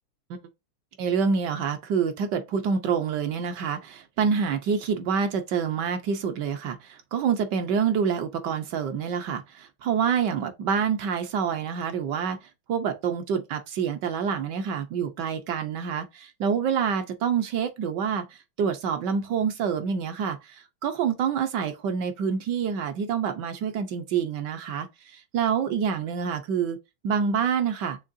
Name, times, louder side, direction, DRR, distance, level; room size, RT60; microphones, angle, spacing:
voice 1, 1.0-26.8 27.0-28.0, right 6 dB, 70° right, 1.2 m, -27 dB
6.5 x 2.9 x 2.5 m
omnidirectional pair, 2.2 m